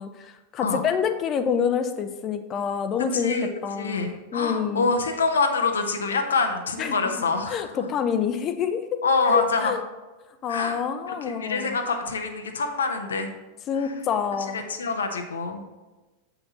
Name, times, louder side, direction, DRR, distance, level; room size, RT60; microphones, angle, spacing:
voice 1, 0.0-3.4 3.6-4.9 6.8-7.1 7.5-9.0 9.3-9.8 10.4-11.8 13.7-14.6, left 7 dB, 30° left, 9 dB, 0.7 m, -27 dB
voice 2, 3.1-3.5 3.7-7.9 9.0-9.8 10.5-10.8 11.1-13.3 13.7-13.9 14.5-15.6, left 4 dB, 70° left, 5 dB, 0.8 m, -26 dB
7.9 x 6.0 x 4.1 m, 1.2 s
figure-of-eight pair, 90°, 0 cm